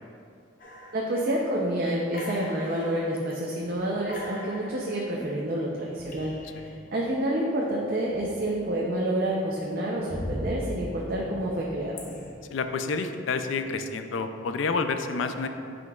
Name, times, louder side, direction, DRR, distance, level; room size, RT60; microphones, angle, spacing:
sound 1, 0.6-1.6 2.1-3.3 3.7-3.8 4.1-6.8 8.1-8.8 9.2-12.3, left 1 dB, 45° left, 0.7 m, -40 dB
voice 1, 0.9-12.0, right 1 dB, 50° right, -3 dB, 0.6 m, -28 dB
voice 2, 12.5-15.5, left 4 dB, 80° left, 8 dB, 0.4 m, -29 dB
9.3 x 5.2 x 2.3 m, 2.5 s
head